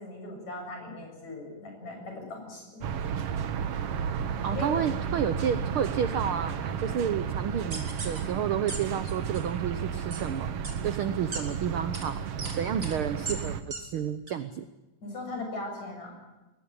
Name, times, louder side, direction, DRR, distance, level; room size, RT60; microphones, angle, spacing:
voice 1, 0.0-2.7 4.5-4.8 15.0-16.2, left 2 dB, 60° left, 2 dB, 8.6 m, -38 dB
sound 1, 2.8-13.6, right 7 dB, 60° right, 1.8 m, -33 dB
voice 2, 4.4-10.5 10.8-12.2 12.6-14.6, right 8 dB, 80° right, 11 dB, 1.1 m, -30 dB
sound 2, 7.7-8.2 8.7-8.8 9.1-9.4 10.1-10.2 10.6-10.7 11.3-11.4 11.9-12.0 12.4-12.5 12.8-12.9 13.3-13.4 13.7-13.8 14.3-14.4, right 3 dB, 30° right, 4.2 m, -36 dB
21.5 x 19.0 x 9.9 m, 1.1 s
omnidirectional pair, 3.7 m